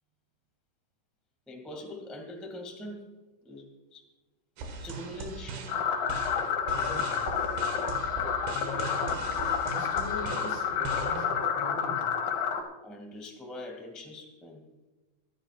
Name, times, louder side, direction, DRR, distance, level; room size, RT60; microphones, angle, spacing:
voice 1, 1.5-3.1 3.4-4.0 4.8-5.8 12.8-14.6, left 1 dB, ahead, 1 dB, 1.1 m, -43 dB
sound 1, 4.6-11.3, right 4 dB, 85° right, 3.8 m, -40 dB
sound 2, 5.7-12.6, left 7 dB, 70° left, 3.4 m, -30 dB
voice 2, 6.7-7.2 8.4-9.2 9.7-12.1, left 3 dB, 45° left, 1 dB, 3.7 m, -41 dB
23.5 x 13.0 x 2.5 m, 1.2 s
omnidirectional pair, 4.3 m